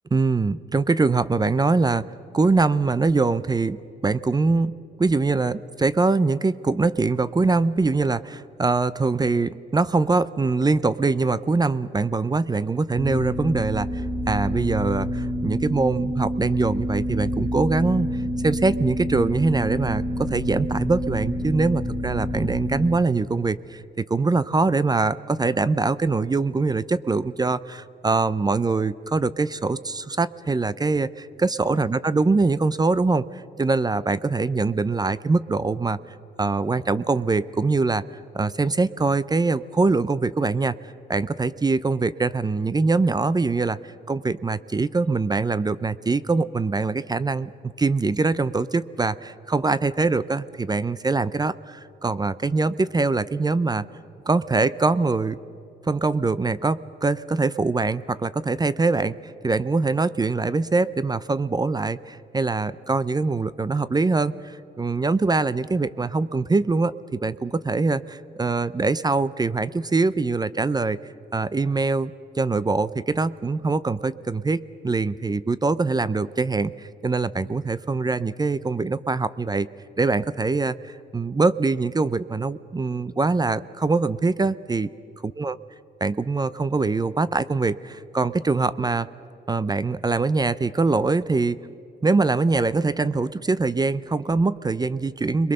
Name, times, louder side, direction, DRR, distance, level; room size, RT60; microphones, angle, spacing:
voice 1, 0.1-2.1 2.3-36.0 36.4-38.0 38.3-40.8 41.1-53.9 54.3-55.4 55.8-71.0 71.3-79.7 80.0-84.9 85.2-85.6 86.0-89.1 89.5-91.6 92.0-95.5, right 3 dB, 20° right, 16 dB, 0.6 m, -23 dB
sound 1, 12.9-23.0, equal, ahead, 1.8 m, -28 dB
26.5 x 22.0 x 6.7 m, 2.6 s
cardioid pair, 90°, 20 cm